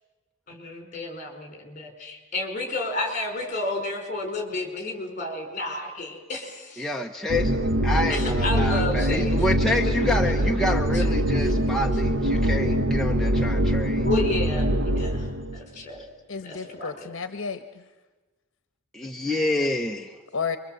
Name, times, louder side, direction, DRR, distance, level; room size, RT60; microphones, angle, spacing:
voice 1, 0.5-6.9 7.9-9.4 10.4-10.5 10.9-11.5 14.0-15.3 15.5-16.0 16.4-17.1, left 2 dB, 35° left, 4 dB, 4.9 m, -32 dB
voice 2, 6.8-14.1 18.9-20.2, left 1 dB, ahead, 0 dB, 0.9 m, -28 dB
sound 1, 7.3-15.6, equal, 60° right, 1.1 m, -23 dB
voice 3, 16.3-17.8 20.3-20.6, left 5 dB, 70° left, 10 dB, 1.0 m, -32 dB
26.5 x 24.0 x 7.9 m, 1.2 s
head